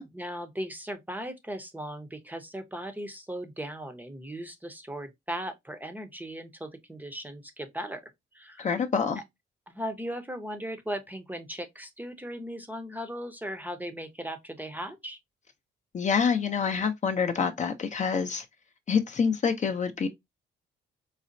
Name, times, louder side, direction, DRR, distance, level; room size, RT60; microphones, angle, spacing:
voice 1, 0.1-8.0 8.3-8.7 9.7-15.2, equal, 10° right, 0.6 m, -37 dB
voice 2, 8.6-9.2 15.9-18.4 18.9-20.1, left 6 dB, 35° left, 0.5 m, -26 dB
4.0 x 2.1 x 2.5 m
cardioid pair, 90°, 20 cm